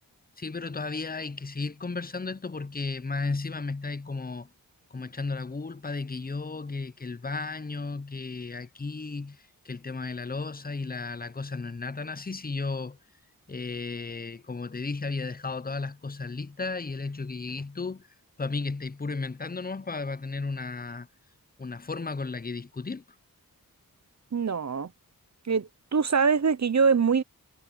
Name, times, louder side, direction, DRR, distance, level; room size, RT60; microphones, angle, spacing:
voice 1, 0.4-4.5 4.9-13.0 13.5-18.1 18.4-21.1 21.6-23.0, left 3 dB, 25° left, 0.7 m, -34 dB
voice 2, 24.3-24.9 25.4-27.2, right 5 dB, 50° right, 0.8 m, -24 dB
wide cardioid pair, 55°, 36 cm